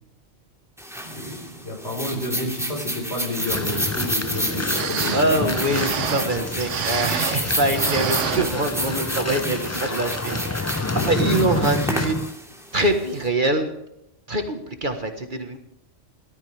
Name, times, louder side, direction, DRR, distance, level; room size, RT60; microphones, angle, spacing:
sound 1, 0.8-13.2, equal, ahead, 2.5 m, -30 dB
voice 1, 1.0-5.5 10.8-10.9, equal, 65° left, 1 dB, 5.2 m, -30 dB
sound 2, 3.3-12.3, left 3 dB, 25° left, 0.4 m, -29 dB
sound 3, 4.4-4.5 4.6-7.5 7.7-9.1 9.5-9.6 10.3-10.5 11.0-11.1, right 9 dB, 90° right, 1.1 m, -29 dB
voice 2, 5.1-12.2 12.7-13.7 14.3-15.6, right 1 dB, 45° right, 6 dB, 1.7 m, -24 dB
18.0 x 13.5 x 3.5 m, 0.83 s
omnidirectional pair, 1.2 m